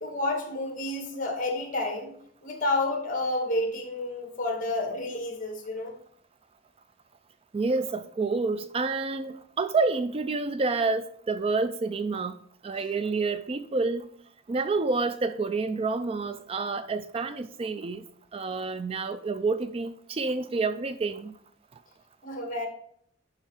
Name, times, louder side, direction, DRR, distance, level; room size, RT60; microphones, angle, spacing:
voice 1, 0.0-2.1 2.4-5.9 12.7-12.9 22.2-22.7, left 2 dB, 40° left, 2.1 m, -30 dB
voice 2, 7.5-12.4 12.6-14.1 14.5-18.0 18.3-21.3, right 3 dB, 30° right, 0.3 m, -28 dB
11.0 x 3.8 x 4.8 m
head